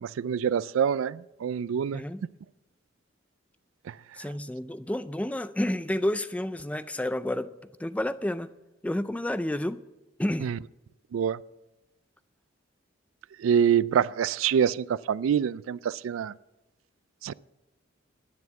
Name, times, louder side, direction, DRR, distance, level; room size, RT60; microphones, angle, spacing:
voice 1, 0.0-2.0 3.9-4.0 10.4-10.6 11.1-11.4 13.4-16.3 17.2-17.3, right 8 dB, 85° right, 0.3 m, -26 dB
voice 2, 1.9-2.2 4.2-7.5 7.8-8.5 8.8-9.8 10.2-10.5, left 1 dB, 5° left, 0.3 m, -30 dB
11.0 x 9.3 x 7.0 m
head